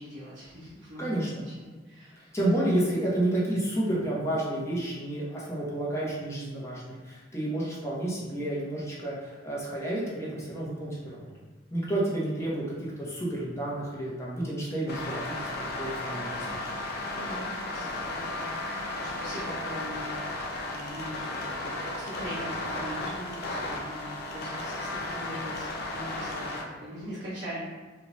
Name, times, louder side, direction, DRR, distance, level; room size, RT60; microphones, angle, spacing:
voice 1, 0.0-2.4 17.1-27.6, equal, 70° right, -10 dB, 0.8 m, -41 dB
voice 2, 1.0-1.4 2.3-11.3 11.7-15.3 15.8-16.6, right 1 dB, 15° left, -6 dB, 0.7 m, -30 dB
sound 1, 14.9-26.6, left 2 dB, 60° left, 0.4 m, -34 dB
2.6 x 2.2 x 3.0 m, 1.3 s
head